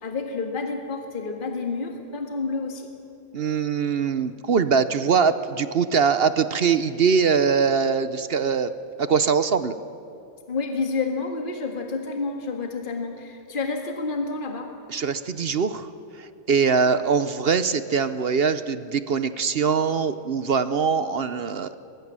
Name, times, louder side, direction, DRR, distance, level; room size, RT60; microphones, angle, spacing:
voice 1, 0.0-2.9 10.5-14.7 16.6-17.0, left 4 dB, 35° left, 3 dB, 1.9 m, -29 dB
voice 2, 3.3-8.7 9.0-9.8 14.9-15.9 16.1-21.8, right 6 dB, 50° right, 12 dB, 0.8 m, -22 dB
23.0 x 22.0 x 7.5 m, 2.8 s
omnidirectional pair, 1.5 m